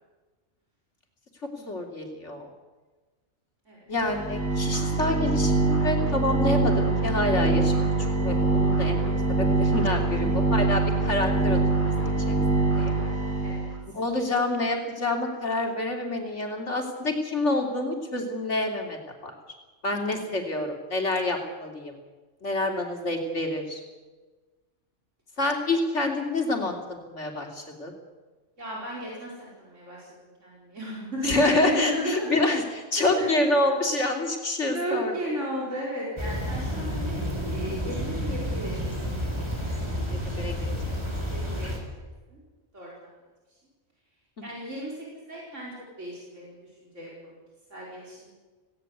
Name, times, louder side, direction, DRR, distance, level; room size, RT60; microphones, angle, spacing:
voice 1, 1.6-2.5 3.9-7.7 8.2-9.0 9.4-11.9 12.3-12.9 13.9-19.3 19.8-22.0 22.4-23.8 25.4-27.9 31.2-35.1 40.1-40.5, left 2 dB, 70° left, 2 dB, 3.4 m, -27 dB
sound 1, 4.0-13.7, right 3 dB, 10° left, 5.4 m, -24 dB
voice 2, 10.1-10.6 13.4-13.7 19.9-20.2 22.6-22.9 28.6-32.4 33.0-33.7 34.7-39.3 41.3-41.7 41.9-42.0 42.3-42.4 42.7-43.1 44.4-47.4 47.7-48.3, equal, 80° right, -4 dB, 5.1 m, -35 dB
sound 2, 36.2-41.8, equal, 20° right, 4.1 m, -30 dB
18.5 x 17.5 x 8.2 m, 1.3 s
omnidirectional pair, 1.2 m